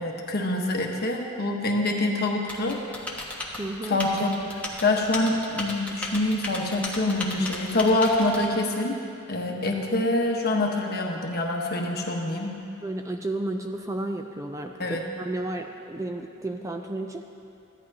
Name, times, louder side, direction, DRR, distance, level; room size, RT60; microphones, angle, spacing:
voice 1, 0.0-2.8 3.9-9.0 9.3-12.6 14.8-15.0, left 2 dB, 45° left, 0 dB, 1.2 m, -25 dB
Typing, 2.5-8.5, left 2 dB, 5° left, 1.1 m, -35 dB
voice 2, 3.6-4.0 12.8-17.3, right 2 dB, 15° right, 4 dB, 0.4 m, -32 dB
15.0 x 11.0 x 2.8 m, 2.6 s
head